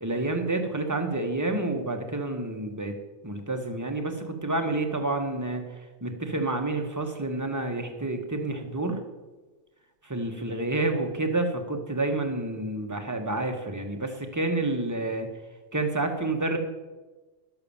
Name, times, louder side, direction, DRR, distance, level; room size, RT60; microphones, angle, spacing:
voice 1, 0.0-2.9 3.2-5.7 6.0-9.0 10.0-15.3 15.7-16.6, right 2 dB, 15° right, 4 dB, 1.3 m, -29 dB
12.0 x 6.8 x 7.1 m, 1.2 s
omnidirectional pair, 1.2 m